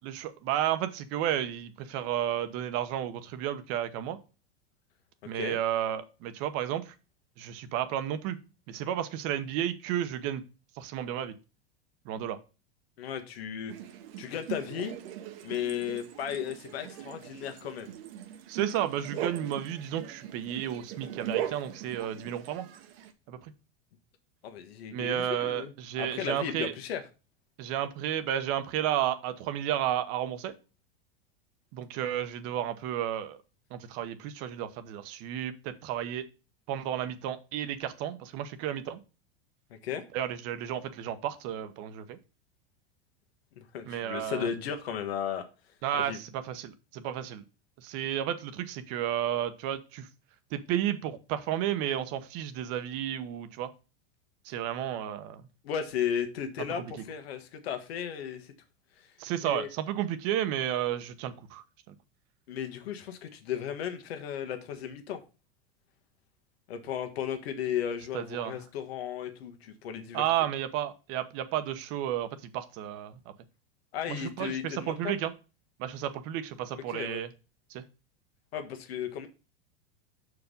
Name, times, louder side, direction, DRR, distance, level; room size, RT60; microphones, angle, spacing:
voice 1, 0.0-4.2 5.2-6.9 7.4-8.4 8.7-10.4 10.8-11.3 12.0-12.4 18.5-22.7 23.3-23.5 24.9-26.7 27.6-30.5 31.7-33.4 33.7-36.3 36.7-39.0 40.1-42.2 43.9-44.5 45.8-47.4 47.8-50.1 50.5-53.7 54.4-55.5 59.2-61.6 61.9-62.0 68.1-68.6 70.1-73.2 74.1-75.3 75.8-77.3 77.7-77.8, right 11 dB, 50° right, 1.0 m, -32 dB
voice 2, 5.2-5.6 13.0-13.7 14.2-15.0 15.4-18.0 24.4-27.0 39.8-40.0 43.6-45.4 46.0-46.2 55.6-58.5 59.0-59.1 59.4-59.7 62.5-65.2 66.7-70.2 73.9-75.1 76.9-77.2 78.5-79.3, left 8 dB, 80° left, 1.5 m, -35 dB
sound 1, 13.7-23.1, right 10 dB, 70° right, 1.2 m, -40 dB
6.4 x 4.8 x 5.3 m
supercardioid pair, 125°, 30 cm